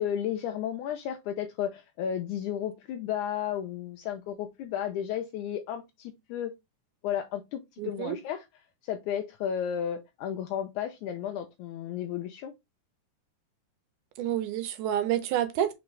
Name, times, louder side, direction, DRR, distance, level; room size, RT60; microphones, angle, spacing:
voice 1, 0.0-6.5 7.0-8.4 8.8-12.5, left 9 dB, 80° left, 1.9 m, -33 dB
voice 2, 7.8-8.2 14.2-15.7, right 11 dB, 85° right, 2.3 m, -29 dB
4.9 x 3.5 x 3.1 m
omnidirectional pair, 3.6 m